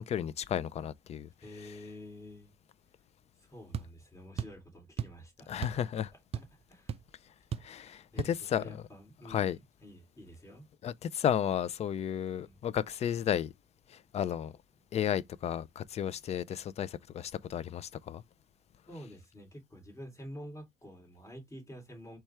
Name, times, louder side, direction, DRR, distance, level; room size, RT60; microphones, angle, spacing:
voice 1, 0.0-1.3 1.6-1.7 5.5-6.1 7.6-8.6 9.3-9.6 10.8-13.5 13.9-14.5 14.9-18.2, left 9 dB, 40° left, 0.4 m, -33 dB
voice 2, 1.4-2.5 3.4-5.9 6.3-7.0 8.1-10.7 12.4-12.6 18.9-22.2, equal, 15° left, 2.6 m, -49 dB
sound 1, 3.7-3.9 4.4-4.6 5.0-5.2 5.6-5.9 6.1-6.6 6.9-7.0 7.5-7.7 8.2-8.4, right 8 dB, 35° right, 0.4 m, -36 dB
4.5 x 2.4 x 4.2 m
cardioid pair, 110°, 17 cm